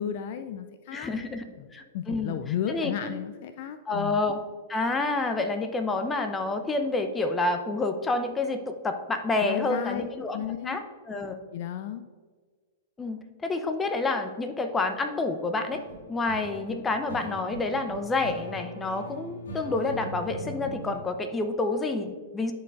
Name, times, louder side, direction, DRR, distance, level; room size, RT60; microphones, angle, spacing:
voice 1, 0.0-1.1 1.5-1.7 1.9-4.2 9.4-10.0 10.3-10.8 11.5-12.0, left 9 dB, 50° left, 9 dB, 0.3 m, -33 dB
voice 2, 0.9-1.4 1.7-2.4 2.7-3.1 3.9-4.4 4.7-10.8 11.1-11.4 13.0-15.8 16.1-22.5, left 3 dB, 15° left, 6 dB, 0.7 m, -28 dB
sound 1, 15.6-20.9, equal, 65° left, 1.6 m, -41 dB
11.0 x 4.6 x 2.5 m, 1.5 s
figure-of-eight pair, 105°, 0 cm